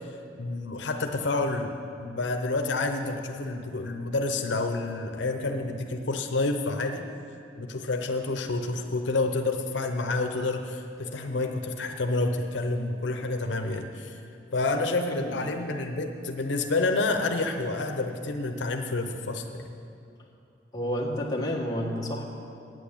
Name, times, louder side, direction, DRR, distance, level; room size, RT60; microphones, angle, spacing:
voice 1, 0.4-1.7 2.0-7.1 7.6-14.2 14.5-19.7, left 2 dB, 85° left, 5 dB, 0.7 m, -29 dB
voice 2, 15.1-15.4 20.7-22.2, equal, 20° left, -3 dB, 1.3 m, -30 dB
9.1 x 8.2 x 8.5 m, 2.6 s
head